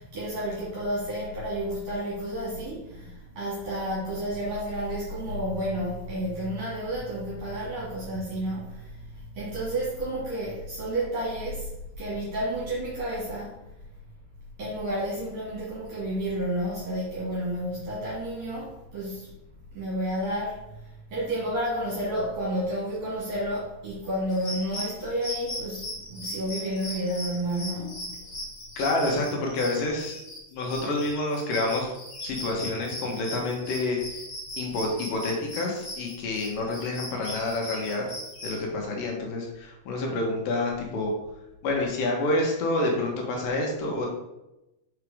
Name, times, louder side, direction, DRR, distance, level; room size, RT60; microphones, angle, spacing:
voice 1, 0.0-13.6 14.6-19.3 19.7-28.0, right 1 dB, 60° right, -7 dB, 2.7 m, -31 dB
sound 1, 24.3-38.6, equal, 90° left, 0.6 m, -38 dB
voice 2, 28.8-30.1 30.5-31.9 32.2-34.0 34.6-38.0 38.4-41.1 41.6-44.1, left 2 dB, 70° left, 0 dB, 2.7 m, -28 dB
6.0 x 4.6 x 4.8 m, 0.93 s
omnidirectional pair, 4.3 m